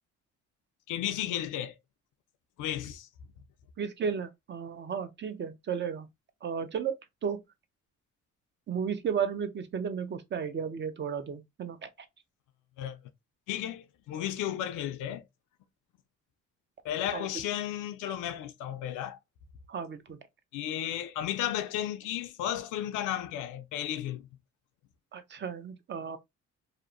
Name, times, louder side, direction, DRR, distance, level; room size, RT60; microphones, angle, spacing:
voice 1, 0.9-1.8 2.6-3.1 12.8-13.0 13.5-15.2 16.8-19.2 20.5-24.3, left 11 dB, 85° left, 0.5 m, -34 dB
voice 2, 3.8-6.1 6.4-6.9 7.2-7.4 8.7-11.9 17.1-17.3 19.7-20.2 25.1-26.2, right 7 dB, 40° right, 0.5 m, -33 dB
2.8 x 2.0 x 2.4 m
cardioid pair, 90°, 30 cm